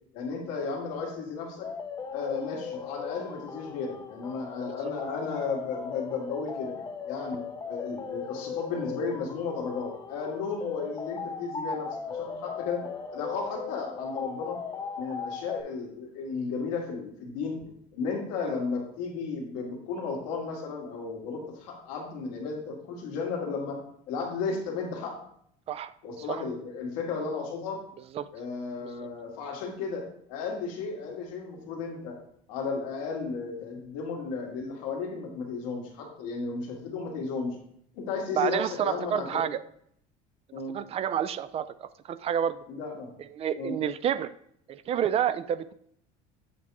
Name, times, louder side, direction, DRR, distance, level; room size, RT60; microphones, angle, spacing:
voice 1, 0.1-1.7 2.1-14.6 15.0-23.8 24.1-25.2 26.0-27.8 28.3-32.2 32.5-37.6 37.9-39.4 40.5-40.8 42.7-43.1 43.6-43.8, left 4 dB, 85° left, -1 dB, 1.8 m, -34 dB
sound 1, 1.6-15.6, left 6 dB, 25° left, 0.6 m, -38 dB
voice 2, 38.4-39.6 40.7-42.6 43.3-44.3 44.7-45.7, right 9 dB, 35° right, 15 dB, 0.3 m, -29 dB
7.6 x 2.8 x 4.6 m, 0.68 s
supercardioid pair, 110°, 17 cm